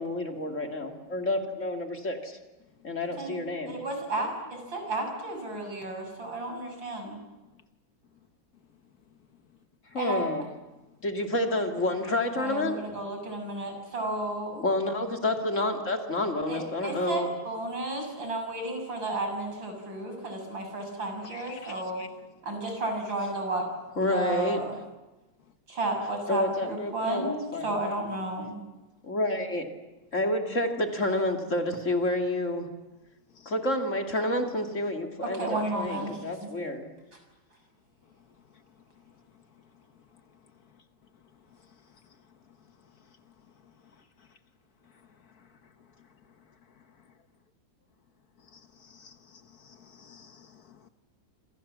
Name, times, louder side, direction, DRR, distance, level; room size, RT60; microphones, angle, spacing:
voice 1, 0.0-2.4 2.8-3.8 9.9-10.4 11.0-12.8 14.6-17.3 24.0-24.6 26.3-27.7 29.0-29.7 30.1-32.7 33.5-36.9, left 1 dB, 40° left, 2.7 m, -29 dB
voice 2, 3.7-7.2 10.0-10.3 12.4-14.6 16.5-22.0 22.4-23.7 24.1-24.7 25.7-28.5 35.2-36.5, right 2 dB, 80° right, 7.2 m, -33 dB
voice 3, 21.2-22.1 33.3-33.5 48.5-50.9, left 5 dB, 55° left, 1.5 m, -51 dB
28.0 x 26.0 x 7.5 m
omnidirectional pair, 2.1 m